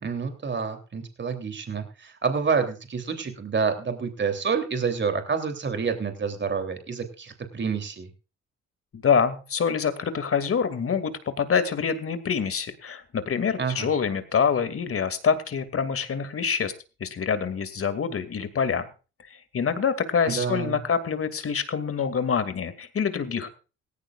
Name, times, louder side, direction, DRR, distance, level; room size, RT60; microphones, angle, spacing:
voice 1, 0.0-8.1 13.6-13.9 20.3-20.8, right 5 dB, 40° right, 7 dB, 3.2 m, -28 dB
voice 2, 8.9-16.7 17.0-18.8 19.3-23.5, left 6 dB, 50° left, 10 dB, 2.4 m, -26 dB
17.5 x 15.5 x 2.5 m, 0.33 s
cardioid pair, 90°, 30 cm